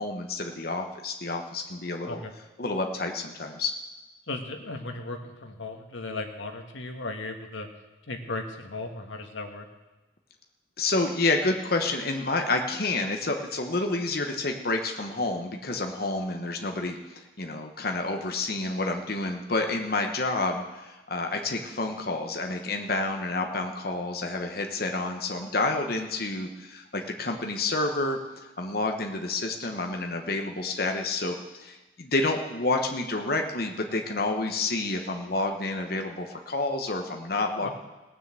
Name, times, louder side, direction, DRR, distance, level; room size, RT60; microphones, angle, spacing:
voice 1, 0.0-2.2 2.6-3.7 10.8-37.7, left 2 dB, 50° left, 3 dB, 1.1 m, -29 dB
voice 2, 4.3-7.7 8.1-9.7 37.6-37.7, left 2 dB, 85° left, 4 dB, 1.6 m, -36 dB
17.5 x 6.8 x 7.6 m, 1.1 s
head